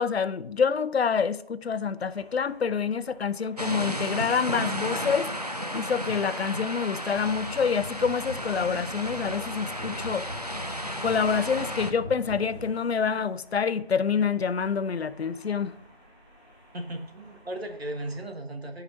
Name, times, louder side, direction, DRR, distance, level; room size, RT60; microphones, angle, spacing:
voice 1, 0.0-5.3 5.7-10.3 11.0-15.7, left 6 dB, 90° left, 0.5 m, -27 dB
sound 1, 2.0-18.2, equal, 15° left, 1.9 m, -56 dB
sound 2, 3.6-11.9, equal, 40° right, 0.4 m, -33 dB
sound 3, 7.1-12.7, left 1 dB, 65° right, 1.7 m, -41 dB
voice 2, 16.7-18.8, right 1 dB, 85° right, 1.5 m, -36 dB
9.7 x 4.9 x 2.7 m
figure-of-eight pair, 175°, 30 cm